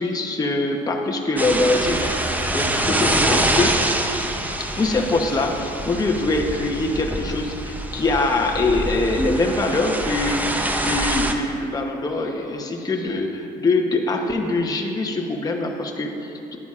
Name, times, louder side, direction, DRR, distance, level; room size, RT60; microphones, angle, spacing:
voice 1, 0.0-2.1 2.4-3.8 4.6-16.6, left 2 dB, 20° left, 1 dB, 0.9 m, -23 dB
sound 1, 1.4-11.3, right 1 dB, 10° right, 0.6 m, -25 dB
11.0 x 9.2 x 2.5 m, 2.7 s
supercardioid pair, 85°, 19 cm